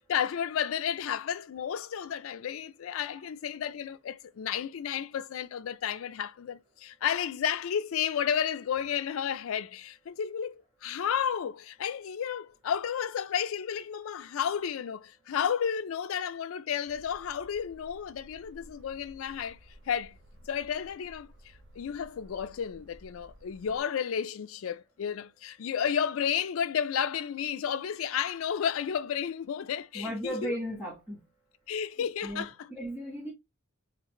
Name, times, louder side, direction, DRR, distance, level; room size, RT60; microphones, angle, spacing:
voice 1, 0.0-19.6 19.9-20.2 20.5-21.3 21.7-30.5 31.7-32.5, left 8 dB, 80° left, 0.4 m, -32 dB
sound 1, 16.9-23.8, equal, 60° right, 0.7 m, -55 dB
voice 2, 29.9-31.2 32.0-33.3, equal, 10° right, 1.3 m, -36 dB
4.0 x 3.2 x 3.0 m
head